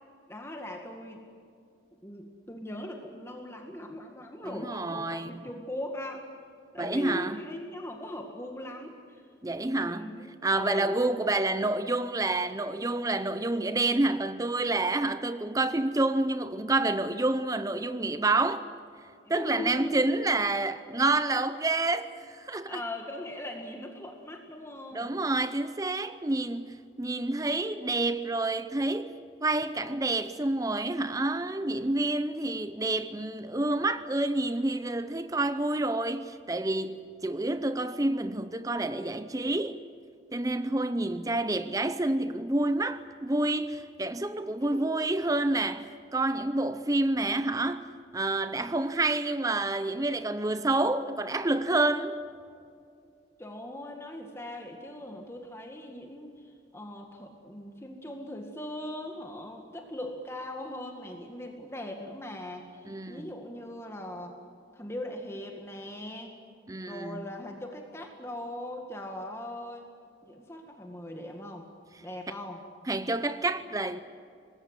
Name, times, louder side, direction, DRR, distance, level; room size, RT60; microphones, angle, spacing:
voice 1, 0.3-1.3 2.0-6.3 6.7-9.2 9.7-11.0 19.3-20.2 22.7-25.1 44.6-45.0 53.4-64.4 64.7-66.4 66.9-69.9 70.2-71.7 72.0-72.6, left 1 dB, 15° left, 1.9 m, -40 dB
voice 2, 4.4-5.4 6.8-7.4 9.4-10.1 10.4-18.6 19.3-22.8 24.9-39.8 40.3-47.9 48.1-52.2 62.9-63.2 66.7-67.2 72.9-74.0, right 2 dB, 20° right, 0.6 m, -28 dB
25.0 x 20.5 x 8.2 m
head